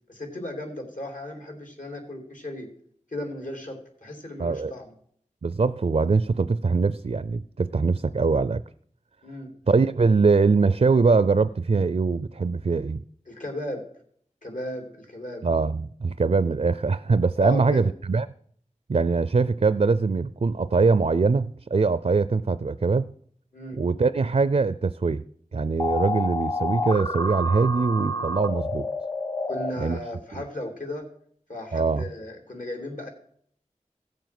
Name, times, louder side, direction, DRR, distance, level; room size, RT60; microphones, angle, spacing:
voice 1, 0.1-2.7 3.1-4.9 9.2-9.5 13.3-13.8 14.4-15.5 17.4-17.8 23.5-23.8 29.5-31.1 31.5-33.1, left 1 dB, 75° left, 3 dB, 3.1 m, -35 dB
voice 2, 4.4-4.7 5.4-8.6 9.7-13.0 15.4-18.3 18.9-23.1 23.8-25.2 25.5-28.9 29.8-30.0 31.7-32.0, right 4 dB, 55° right, 15 dB, 0.4 m, -22 dB
sound 1, 25.8-29.7, left 2 dB, 30° left, 1.0 m, -28 dB
16.0 x 7.2 x 5.9 m, 0.62 s
wide cardioid pair, 40°, 13 cm